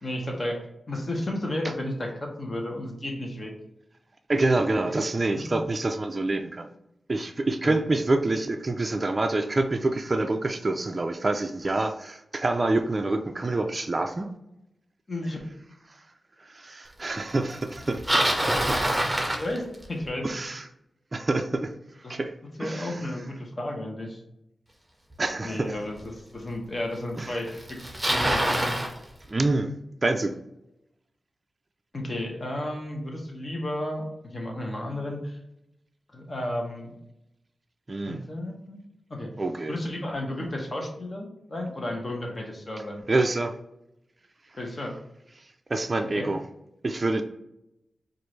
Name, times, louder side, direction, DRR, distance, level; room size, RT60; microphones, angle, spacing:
voice 1, 0.0-3.5 4.9-5.0 5.4-5.6 7.6-7.8 15.1-15.4 19.4-20.3 22.0-22.2 22.6-24.2 25.4-28.8 31.9-34.0 34.3-35.4 36.1-37.0 38.0-38.8 39.1-39.3 39.7-43.0 44.6-45.0 46.1-46.3, left 1 dB, 35° left, 1 dB, 1.0 m, -33 dB
voice 2, 4.3-6.7 7.1-14.3 16.4-18.8 20.2-20.6 21.1-21.7 22.1-22.3 22.6-23.0 25.2-25.8 27.2-27.3 29.3-29.7 30.0-30.4 37.9-38.2 39.4-39.8 43.1-43.6 45.7-46.4 46.8-47.2, right 2 dB, 35° right, 5 dB, 0.3 m, -27 dB
Bicycle, 17.7-20.1 25.1-25.2 26.0-26.1 27.2-27.3 27.5-28.9, right 1 dB, 5° right, 0.9 m, -25 dB
4.6 x 2.5 x 3.2 m, 0.84 s
wide cardioid pair, 90°, 0 cm